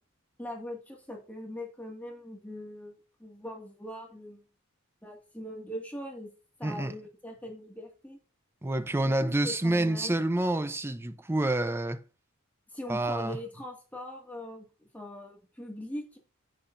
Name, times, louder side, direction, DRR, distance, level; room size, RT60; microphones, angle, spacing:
voice 1, 0.4-2.9 3.2-4.4 5.0-6.3 6.6-8.2 9.0-10.1 12.7-14.7 14.9-16.2, left 1 dB, 10° left, 1.9 m, -41 dB
voice 2, 6.6-6.9 8.6-12.0 12.9-13.4, right 1 dB, 10° right, 0.5 m, -28 dB
9.7 x 8.6 x 2.6 m
head